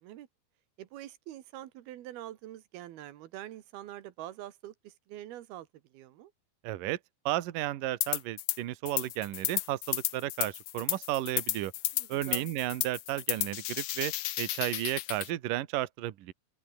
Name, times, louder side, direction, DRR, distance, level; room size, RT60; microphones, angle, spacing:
voice 1, 0.8-6.3 11.9-12.5, right 13 dB, 90° right, 3.4 m, -45 dB
voice 2, 6.6-7.0 7.3-11.7 12.1-16.3, right 15 dB, 70° right, 2.8 m, -33 dB
sound 1, 8.0-8.6 8.9-15.3, left 16 dB, 85° left, 1.5 m, -33 dB
open air
omnidirectional pair, 4.3 m